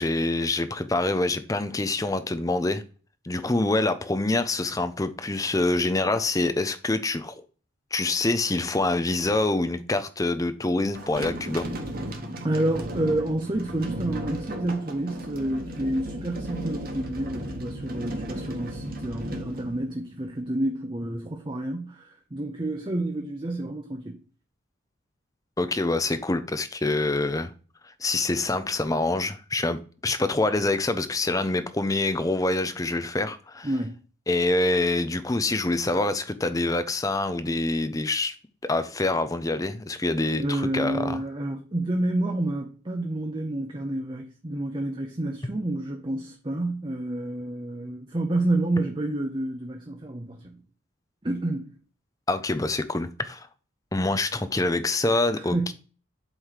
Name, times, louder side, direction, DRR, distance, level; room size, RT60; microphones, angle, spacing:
voice 1, 0.0-2.8 3.2-7.3 7.9-11.7 25.6-27.5 28.0-33.7 34.3-38.3 38.6-41.2 52.3-53.5 53.9-55.7, left 2 dB, 15° left, 0.5 m, -26 dB
sound 1, 10.9-20.4, right 1 dB, 45° right, 1.2 m, -35 dB
voice 2, 12.4-24.2 33.6-34.0 40.4-50.6 51.2-51.7 55.3-55.7, right 1 dB, 25° right, 0.7 m, -29 dB
8.0 x 3.2 x 5.6 m
head